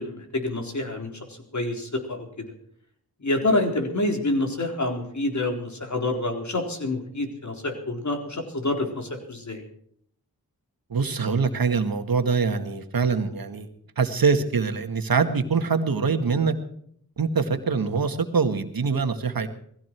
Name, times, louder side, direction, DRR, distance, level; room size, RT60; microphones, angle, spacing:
voice 1, 0.0-2.4 3.2-9.6, left 2 dB, 50° left, 3 dB, 4.1 m, -27 dB
voice 2, 10.9-13.7 14.0-16.5 17.2-19.5, right 5 dB, 65° right, 7 dB, 2.0 m, -24 dB
20.0 x 15.5 x 4.7 m, 0.66 s
cardioid pair, 50°, 38 cm